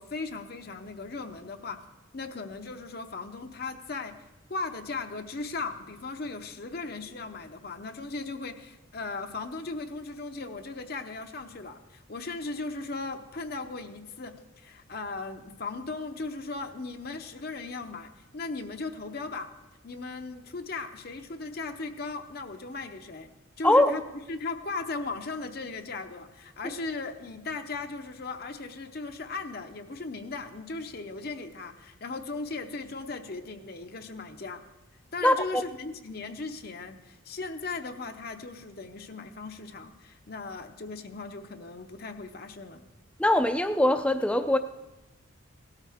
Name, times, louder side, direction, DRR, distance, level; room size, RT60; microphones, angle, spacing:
voice 1, 0.0-1.8 2.1-4.1 4.5-19.5 19.8-23.3 23.6-34.6 35.1-42.8, left 3 dB, 45° left, 6 dB, 0.7 m, -37 dB
voice 2, 23.6-23.9 35.2-35.6 43.2-44.6, left 1 dB, 5° left, 9 dB, 0.5 m, -22 dB
17.0 x 13.0 x 3.5 m, 1.0 s
head